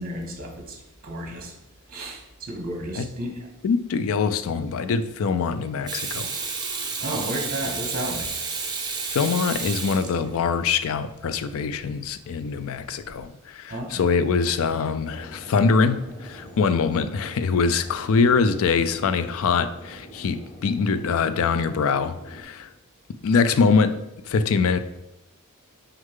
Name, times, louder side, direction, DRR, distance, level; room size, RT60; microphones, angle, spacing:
voice 1, 0.0-1.5 1.9-3.4 7.0-8.4 13.7-14.1, right 1 dB, 40° right, 3 dB, 1.3 m, -32 dB
voice 2, 3.6-6.3 9.1-22.7 23.2-24.0 24.3-24.8, left 5 dB, 70° left, 12 dB, 0.4 m, -23 dB
Water tap faucet / Sink (filling or washing), 5.9-10.6 13.0-13.2, right 4 dB, 20° right, 0.9 m, -31 dB
sound 1, 15.0-22.4, equal, 35° left, 2.3 m, -45 dB
6.4 x 4.7 x 3.6 m, 0.90 s
head